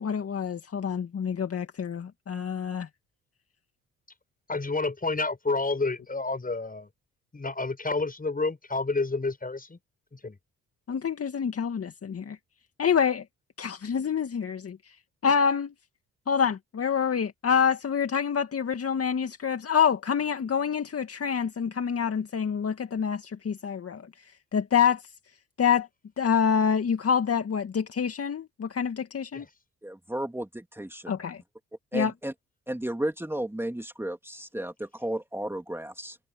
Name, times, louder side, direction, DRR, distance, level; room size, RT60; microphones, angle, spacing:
voice 1, 0.0-2.9 10.9-12.4 12.8-13.2 13.6-14.8 15.2-15.7 16.3-24.0 24.5-25.0 25.6-25.9 26.2-29.5 31.1-31.4 31.9-32.1, left 7 dB, 45° left, 2.1 m, -26 dB
voice 2, 4.5-6.9 7.3-9.8 10.1-10.4 29.3-29.5, left 3 dB, 25° left, 7.5 m, -29 dB
voice 3, 29.8-31.2 31.9-32.3 32.7-36.2, right 1 dB, 5° right, 3.0 m, -33 dB
hypercardioid pair, 50°, 33 cm